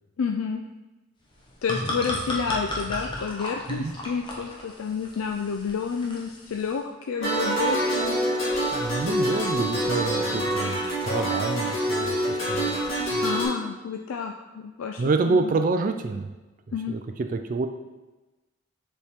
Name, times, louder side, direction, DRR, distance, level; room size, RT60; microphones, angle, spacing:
voice 1, 0.2-0.6 1.6-8.2 13.2-15.6 16.7-17.0, left 6 dB, 85° left, 3 dB, 0.4 m, -30 dB
sound 1, 1.3-6.8, left 1 dB, 25° left, 0.9 m, -34 dB
sound 2, 7.2-13.4, right 1 dB, 70° left, 2.1 m, -26 dB
voice 2, 8.7-12.8 13.1-13.2 15.0-16.3 16.9-17.7, right 3 dB, 40° right, 6 dB, 0.3 m, -27 dB
7.0 x 4.4 x 3.5 m, 1.1 s
head